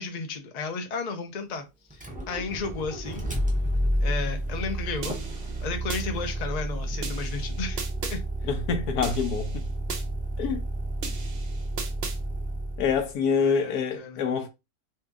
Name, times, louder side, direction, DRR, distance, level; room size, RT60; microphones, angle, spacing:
voice 1, 0.0-1.6 1.9-2.0 2.3-3.3 4.0-5.2 5.6-7.8 8.1-8.2 13.4-14.2, left 4 dB, 45° left, 0.5 m, -33 dB
Motor vehicle (road), 1.9-13.1, right 1 dB, 10° right, 0.4 m, -31 dB
sound 1, 5.0-6.0 7.0-8.2 9.0-10.0 11.0-12.2, right 5 dB, 55° right, 0.8 m, -37 dB
voice 2, 8.4-9.6 10.4-10.6 12.8-14.5, left 6 dB, 85° left, 1.2 m, -26 dB
2.7 x 2.7 x 3.5 m
omnidirectional pair, 1.6 m